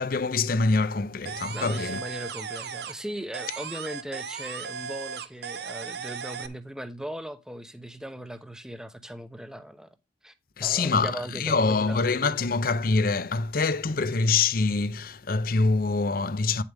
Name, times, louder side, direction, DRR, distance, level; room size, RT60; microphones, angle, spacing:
voice 1, 0.0-2.0 10.6-16.6, left 4 dB, 45° left, 0.6 m, -25 dB
sound 1, 1.3-3.1 3.3-6.5, right 6 dB, 60° right, 0.8 m, -36 dB
voice 2, 1.5-9.9 10.2-10.3 10.6-12.0, right 1 dB, 5° right, 0.7 m, -38 dB
9.4 x 7.2 x 3.4 m
head